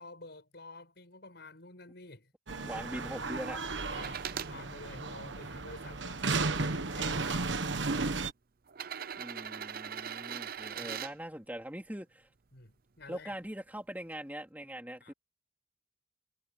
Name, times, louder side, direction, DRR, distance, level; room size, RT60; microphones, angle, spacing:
voice 1, 0.0-2.3 3.9-8.1 10.8-10.9 12.5-13.3 15.0-15.1, left 2 dB, 60° left, 6.9 m, -50 dB
sound 1, 2.5-8.3, right 3 dB, 70° right, 1.3 m, -34 dB
voice 2, 2.6-3.6 9.2-12.3 13.1-15.1, right 1 dB, 10° right, 3.9 m, -42 dB
sound 2, 3.9-4.5 5.3-6.3 7.3-7.4 8.7-11.1 13.0-13.1, right 8 dB, 50° right, 0.7 m, -40 dB
head